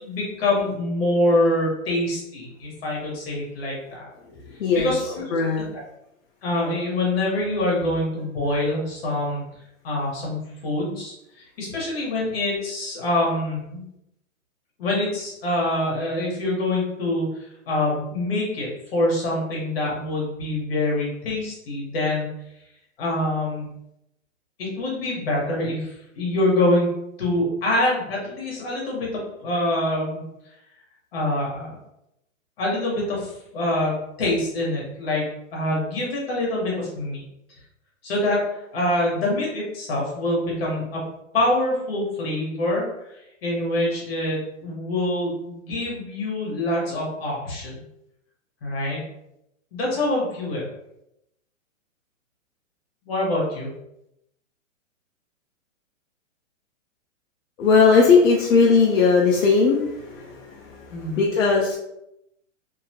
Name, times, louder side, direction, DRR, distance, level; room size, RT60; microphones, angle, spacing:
voice 1, 0.0-4.1 4.7-5.3 5.7-5.8 6.4-9.4 9.8-13.8 14.8-22.3 23.0-23.7 24.6-26.9 27.2-30.2 31.1-31.8 32.6-37.2 38.0-38.4 38.7-41.0 41.3-42.9 43.4-47.8 48.6-49.0 49.7-50.6 53.0-53.7 60.9-61.2, left 1 dB, 45° left, -3 dB, 1.2 m, -25 dB
voice 2, 4.6-4.9 5.3-5.6 57.6-61.8, left 4 dB, 70° left, -1 dB, 0.6 m, -18 dB
2.7 x 2.3 x 2.7 m, 0.83 s
hypercardioid pair, 170°, 39 cm